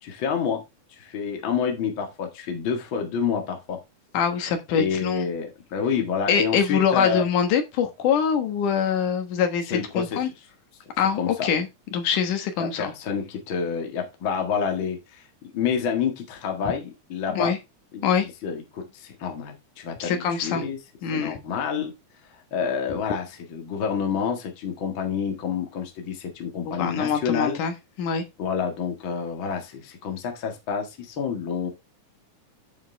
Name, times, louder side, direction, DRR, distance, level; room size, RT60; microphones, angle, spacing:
voice 1, 0.0-0.6 1.0-3.8 4.7-7.2 9.7-10.3 11.2-11.5 12.6-15.3 15.5-17.6 17.9-18.1 18.4-20.8 21.1-21.9 22.5-27.6 28.4-31.7, left 6 dB, 45° left, 2.2 m, -28 dB
voice 2, 4.1-5.3 6.3-10.3 11.0-12.9 17.3-17.6 18.0-18.3 20.0-20.6 21.0-21.4 26.7-27.7 28.0-28.2, left 7 dB, 80° left, 2.9 m, -24 dB
9.2 x 7.2 x 3.4 m
omnidirectional pair, 3.6 m